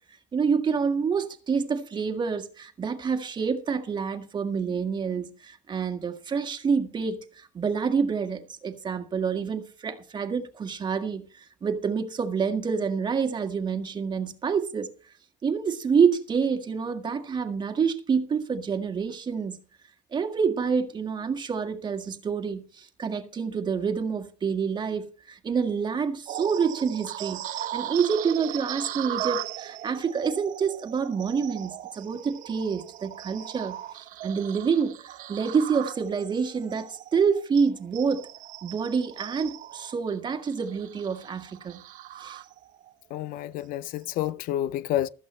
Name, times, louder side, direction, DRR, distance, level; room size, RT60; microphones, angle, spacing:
voice 1, 0.3-14.9 15.4-19.6 20.1-33.8 34.2-38.3 38.6-41.8 42.2-42.4 44.6-44.8, right 6 dB, 30° right, 1.8 m, -27 dB
sound 1, 26.3-42.9 43.4-43.6 44.1-44.3, right 13 dB, 60° right, 1.2 m, -38 dB
voice 2, 43.1-45.1, left 13 dB, 65° left, 0.5 m, -29 dB
15.5 x 13.5 x 3.2 m
cardioid pair, 125°, 15 cm